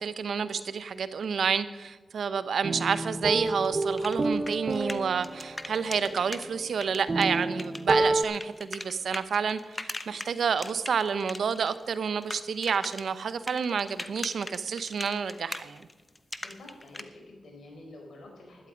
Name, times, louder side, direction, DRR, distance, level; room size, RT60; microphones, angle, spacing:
voice 1, 0.0-15.8, right 6 dB, 75° right, 13 dB, 0.7 m, -29 dB
sound 1, 2.6-8.2, right 2 dB, 40° right, 1.0 m, -30 dB
sound 2, 3.6-6.5 6.8-11.7 11.9-17.0, left 2 dB, 25° left, 1.0 m, -40 dB
voice 2, 16.4-18.7, left 2 dB, 75° left, 1 dB, 4.3 m, -48 dB
12.0 x 11.5 x 5.1 m, 1.3 s
cardioid pair, 50°, 0 cm